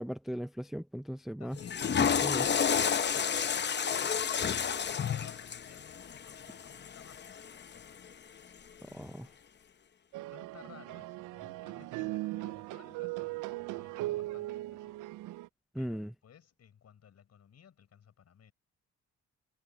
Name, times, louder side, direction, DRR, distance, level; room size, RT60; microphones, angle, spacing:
voice 1, 0.0-1.6 2.2-2.5 8.9-9.3 15.7-16.1, equal, ahead, 0.6 m, -37 dB
voice 2, 1.4-4.3 4.8-8.6 8.9-9.3 10.3-15.0 15.8-18.5, left 8 dB, 55° left, 7.0 m, -58 dB
Water / Toilet flush, 1.5-7.8, left 7 dB, 35° left, 0.8 m, -31 dB
sound 1, 10.1-15.5, right 18 dB, 90° right, 0.5 m, -39 dB
cardioid pair, 90°, 30 cm